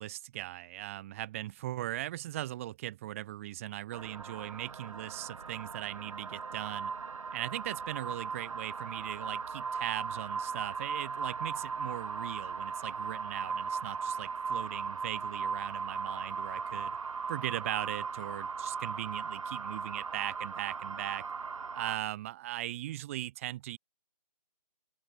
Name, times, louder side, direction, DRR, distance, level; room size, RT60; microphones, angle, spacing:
voice 1, 0.0-6.9 7.3-17.0 17.3-21.2 21.7-23.8, right 14 dB, 20° right, 1.1 m, -39 dB
sound 1, 3.9-22.0, right 5 dB, 55° right, 1.6 m, -38 dB
open air
figure-of-eight pair, 145°, 20 cm